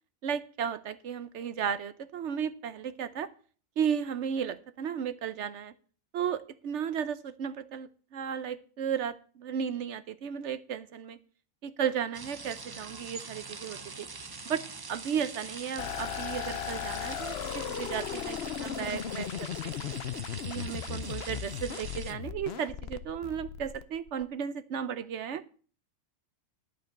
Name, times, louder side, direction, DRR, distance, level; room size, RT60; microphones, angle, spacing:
voice 1, 0.2-3.3 3.8-5.7 6.1-11.2 11.6-14.1 14.4-14.6 14.9-20.0 20.5-25.4, right 8 dB, 65° right, 14 dB, 0.9 m, -34 dB
sound 1, 12.1-22.1, right 4 dB, 35° right, 0.3 m, -44 dB
sound 2, 15.8-24.2, left 9 dB, 60° left, 0.8 m, -37 dB
11.0 x 5.2 x 7.9 m, 0.43 s
omnidirectional pair, 1.4 m